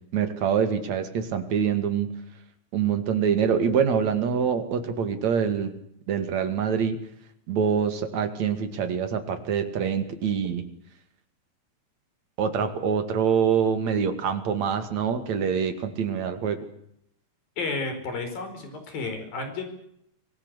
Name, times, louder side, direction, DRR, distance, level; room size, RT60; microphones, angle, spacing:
voice 1, 0.1-2.1 2.7-5.7 6.1-7.0 7.5-10.6 12.4-16.6, right 7 dB, 50° right, 8 dB, 3.3 m, -25 dB
voice 2, 17.6-19.6, left 3 dB, 60° left, 6 dB, 6.4 m, -32 dB
25.5 x 19.0 x 8.2 m, 0.74 s
omnidirectional pair, 4.6 m